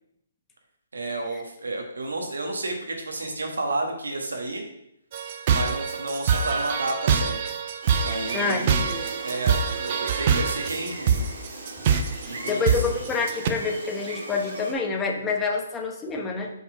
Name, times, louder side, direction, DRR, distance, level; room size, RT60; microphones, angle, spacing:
voice 1, 0.9-4.6 5.5-7.4 8.0-8.9 9.2-11.3 12.2-12.8, right 2 dB, 80° right, 2 dB, 1.4 m, -31 dB
sound 1, 5.1-13.5, right 6 dB, 40° right, 0.6 m, -24 dB
Gull seagull, 7.8-14.7, right 2 dB, 60° right, 1.6 m, -38 dB
voice 2, 8.3-9.1 12.1-16.5, left 4 dB, 15° left, 1 dB, 0.9 m, -28 dB
5.4 x 4.4 x 5.0 m, 0.78 s
figure-of-eight pair, 135°, 0 cm